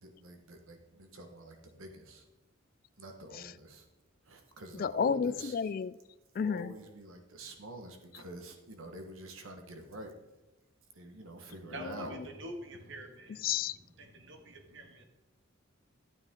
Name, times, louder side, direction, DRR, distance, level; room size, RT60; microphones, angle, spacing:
voice 1, 0.0-2.2 3.0-3.8 4.3-5.5 6.4-10.1 10.9-12.1, right 1 dB, 85° right, 5 dB, 1.4 m, -46 dB
voice 2, 4.7-6.0 6.4-6.7 11.8-12.1 13.4-13.8, left 7 dB, 45° left, 16 dB, 0.3 m, -32 dB
voice 3, 11.5-15.0, right 1 dB, 65° right, 4 dB, 1.8 m, -47 dB
12.5 x 8.8 x 3.7 m, 1.1 s
head